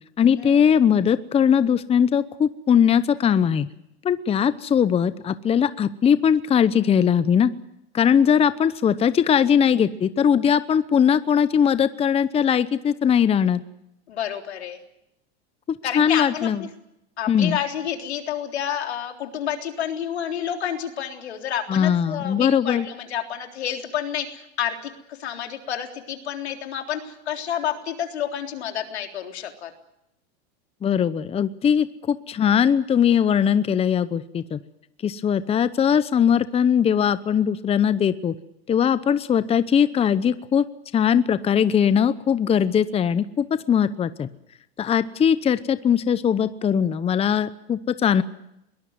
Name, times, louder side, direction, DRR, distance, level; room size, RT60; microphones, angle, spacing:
voice 1, 0.2-3.7 4.0-7.5 7.9-13.6 15.7-16.7 17.3-17.6 21.7-22.9 30.8-34.6 35.0-38.3 38.7-40.6 40.9-44.3 44.8-48.2, left 8 dB, 20° left, 15 dB, 0.8 m, -20 dB
voice 2, 14.1-14.8 15.8-16.7 17.2-29.7, left 9 dB, 90° left, 4 dB, 3.7 m, -29 dB
22.0 x 18.5 x 9.5 m, 0.83 s
supercardioid pair, 120°, 32 cm